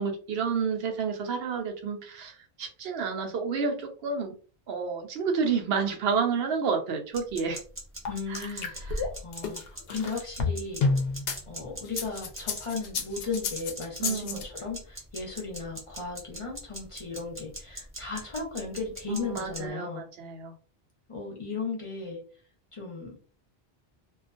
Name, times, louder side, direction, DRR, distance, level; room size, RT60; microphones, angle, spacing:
voice 1, 0.0-4.3 4.7-7.6 8.3-8.5 14.0-14.4 19.1-20.6, right 5 dB, 75° right, 4 dB, 0.8 m, -30 dB
sound 1, 7.1-19.6, right 1 dB, 15° right, 0.6 m, -42 dB
sound 2, 8.1-11.4 11.9-14.4, left 4 dB, 70° left, 0.8 m, -30 dB
voice 2, 8.1-10.9 11.5-20.1 21.1-22.2 22.7-23.2, left 4 dB, 35° left, -2 dB, 0.7 m, -36 dB
2.3 x 2.2 x 2.5 m, 0.40 s
omnidirectional pair, 1.0 m